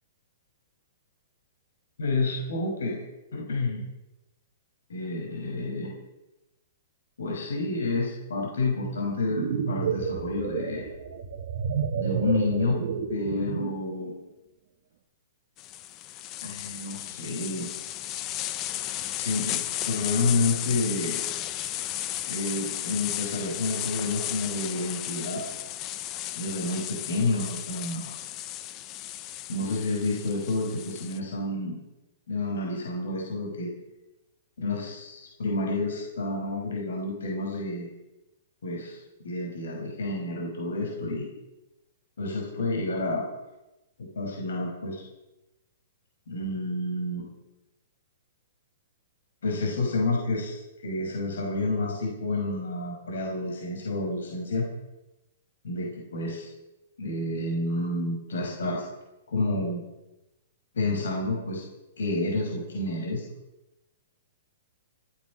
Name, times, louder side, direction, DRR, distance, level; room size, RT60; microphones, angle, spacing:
voice 1, 2.0-3.0 3.3-3.9 4.9-5.9 7.2-10.9 11.9-12.8 13.1-14.1 16.4-17.7 19.2-21.2 22.3-25.4 26.4-28.1 29.5-31.8 32.3-33.7 34.6-37.9 38.6-39.0 39.2-41.3 42.2-43.3 44.0-45.0 46.3-47.3 49.4-54.7 55.6-56.5 57.0-58.9 59.3-59.8 60.7-61.6 62.0-63.2, left 2 dB, 80° left, -1 dB, 6.0 m, -29 dB
sound 1, 9.1-13.9, right 7 dB, 40° right, 1.6 m, -31 dB
sound 2, 15.6-31.2, left 13 dB, 20° left, 0.6 m, -34 dB
16.5 x 13.5 x 6.4 m, 0.97 s
hypercardioid pair, 180°, 0 cm